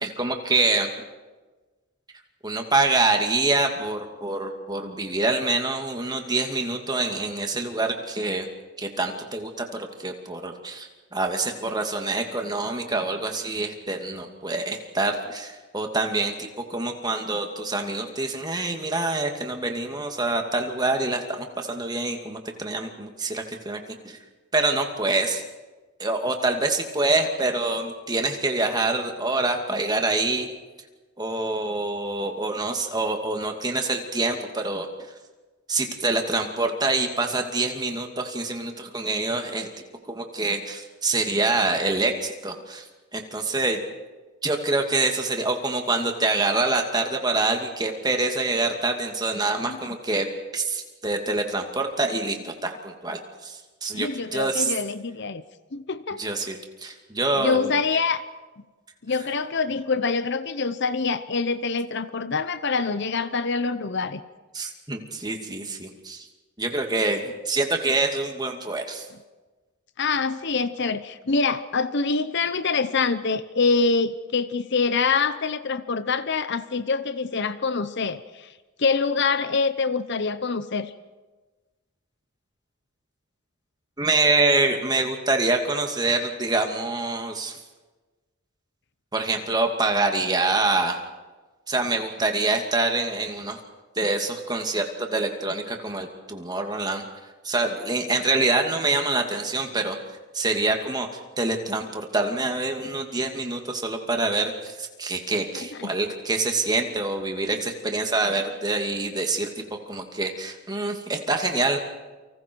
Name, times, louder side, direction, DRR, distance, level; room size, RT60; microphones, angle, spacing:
voice 1, 0.0-1.1 2.4-8.5 8.8-24.2 24.5-25.4 26.0-30.5 31.2-34.9 35.7-39.7 40.1-42.9 43.1-43.8 44.4-50.3 50.5-54.7 56.2-58.0 64.5-66.3 66.6-69.1 84.0-87.6 89.1-91.0 91.7-93.6 94.0-97.0 97.4-100.0 100.3-109.5 109.9-111.8, right 2 dB, 20° right, 3 dB, 2.4 m, -26 dB
voice 2, 53.9-55.4 55.7-56.2 57.4-58.2 59.0-64.2 70.0-78.5 78.8-80.9 105.5-105.9, left 4 dB, 50° left, 13 dB, 0.8 m, -25 dB
30.0 x 25.0 x 4.7 m, 1.2 s
head